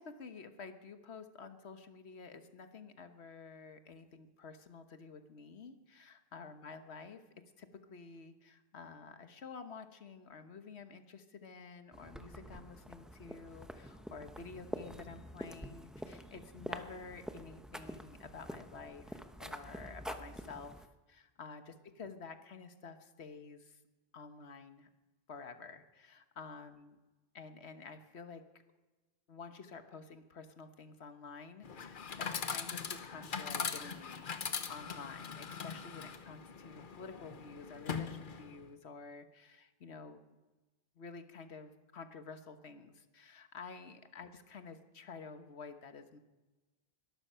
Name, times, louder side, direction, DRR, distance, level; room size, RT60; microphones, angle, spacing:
voice 1, 0.0-7.2 7.6-23.8 24.1-24.9 25.3-27.0 27.3-28.4 29.3-40.2 41.0-46.2, left 4 dB, 80° left, 9 dB, 1.5 m, -50 dB
sound 1, 11.9-20.9, equal, ahead, 0.8 m, -47 dB
Chatter / Coin (dropping), 31.6-38.7, left 6 dB, 55° left, 1.0 m, -41 dB
21.5 x 12.0 x 5.6 m, 1.2 s
omnidirectional pair, 1.1 m